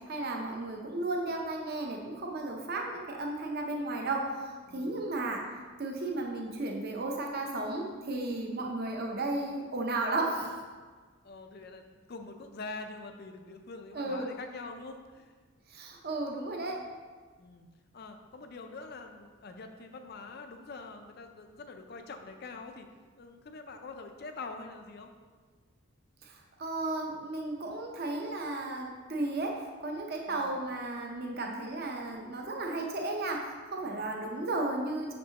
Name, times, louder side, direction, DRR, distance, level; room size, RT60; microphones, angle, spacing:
voice 1, 0.1-5.4 5.8-10.6 13.9-14.3 15.7-16.8 26.2-29.5 29.8-33.4 33.7-35.1, right 2 dB, 45° right, 1 dB, 0.7 m, -34 dB
voice 2, 4.7-5.0 11.2-15.3 17.4-17.7 17.9-22.9 23.2-25.1 30.3-30.6 33.8-34.1, left 3 dB, 45° left, 6 dB, 0.4 m, -45 dB
6.5 x 5.2 x 2.9 m, 1.5 s
head